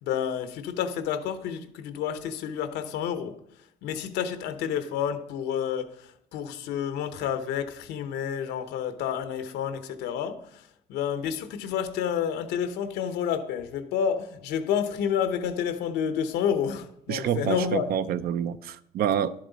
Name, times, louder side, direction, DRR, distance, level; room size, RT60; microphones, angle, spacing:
voice 1, 0.0-3.4 3.8-17.9, left 8 dB, 85° left, 0.9 m, -29 dB
voice 2, 17.1-19.3, right 9 dB, 65° right, 0.6 m, -27 dB
11.0 x 7.7 x 4.0 m
cardioid pair, 110°, 17 cm